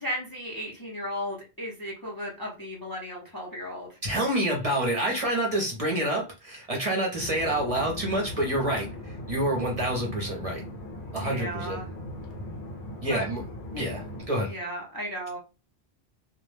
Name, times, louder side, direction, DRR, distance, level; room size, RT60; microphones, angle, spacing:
voice 1, 0.0-4.0 11.2-11.9 13.1-13.3 14.4-15.4, equal, 30° left, -3 dB, 0.4 m, -35 dB
voice 2, 4.0-10.6 11.1-11.8 13.0-13.4 13.7-14.5, right 1 dB, 40° right, -1 dB, 0.6 m, -28 dB
sound 1, 7.2-14.3, left 1 dB, 55° left, 0.8 m, -39 dB
2.1 x 2.0 x 3.1 m, 0.31 s
omnidirectional pair, 1.1 m